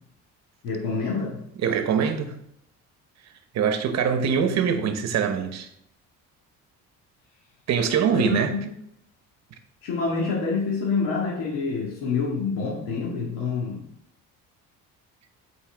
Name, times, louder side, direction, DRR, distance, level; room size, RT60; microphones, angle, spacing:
voice 1, 0.6-1.4 8.1-8.7 9.8-13.8, left 4 dB, 85° left, 1.9 m, -27 dB
voice 2, 1.6-2.3 3.5-5.7 7.7-8.5, right 7 dB, 55° right, 0.9 m, -23 dB
7.6 x 4.6 x 3.4 m
cardioid pair, 125°, 33 cm